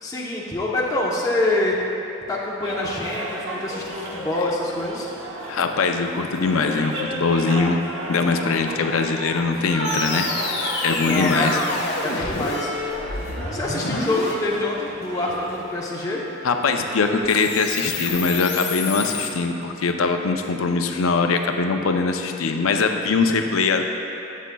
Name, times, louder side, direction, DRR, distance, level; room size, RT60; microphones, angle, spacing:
voice 1, 0.0-1.7 2.3-5.1 11.0-11.7 12.0-12.7 13.5-16.2, left 2 dB, 15° left, -5 dB, 0.8 m, -25 dB
sound 1, 2.6-15.8, right 1 dB, 75° right, 1.0 m, -33 dB
voice 2, 5.5-7.8 8.1-10.3 10.8-11.6 12.1-12.3 13.8-14.0 16.4-23.8, left 4 dB, 90° left, 5 dB, 0.5 m, -22 dB
sound 2, 9.8-19.3, left 3 dB, 55° left, 0.8 m, -30 dB
12.0 x 7.3 x 2.3 m, 2.9 s
head